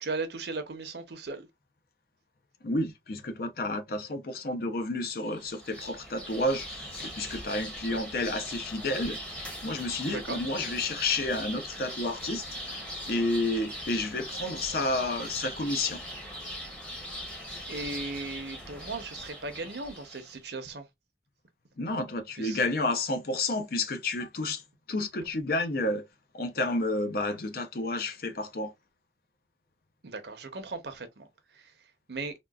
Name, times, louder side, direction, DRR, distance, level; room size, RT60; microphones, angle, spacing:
voice 1, 0.0-1.5 10.0-10.4 17.7-20.9 22.4-22.6 30.0-31.3 31.5-31.7 32.1-32.3, right 3 dB, 65° right, 0.7 m, -37 dB
voice 2, 2.6-9.2 9.6-12.7 13.1-16.0 21.8-24.6 24.9-26.1 26.3-28.7, left 2 dB, 55° left, 0.6 m, -30 dB
sound 1, 5.2-20.4, equal, 5° left, 0.8 m, -40 dB
3.7 x 2.3 x 2.3 m
head